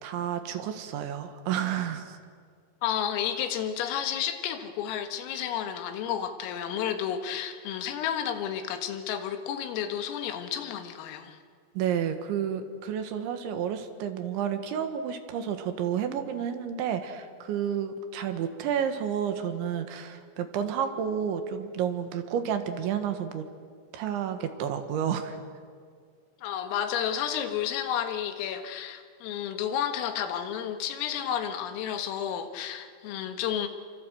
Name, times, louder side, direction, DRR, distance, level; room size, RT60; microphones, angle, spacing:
voice 1, 0.0-2.2 11.8-23.5 23.9-25.4, right 8 dB, 70° right, 8 dB, 3.7 m, -30 dB
voice 2, 2.8-11.4 26.4-33.7, left 9 dB, 90° left, 7 dB, 4.3 m, -31 dB
28.5 x 25.0 x 7.9 m, 2.1 s
omnidirectional pair, 5.8 m